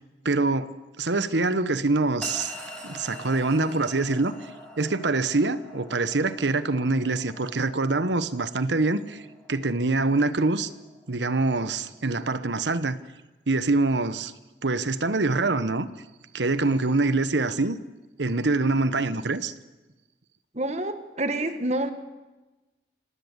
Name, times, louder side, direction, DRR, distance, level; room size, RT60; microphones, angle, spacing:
voice 1, 0.2-2.5 2.8-4.5 4.8-9.2 9.5-10.7 11.1-13.0 13.5-14.3 14.6-15.9 16.3-17.8 18.2-19.5, right 3 dB, 85° right, 1.2 m, -25 dB
sound 1, 2.2-12.6, left 1 dB, 5° left, 6.7 m, -45 dB
voice 2, 20.5-21.9, right 1 dB, 40° right, 1.7 m, -28 dB
26.5 x 18.0 x 8.2 m
head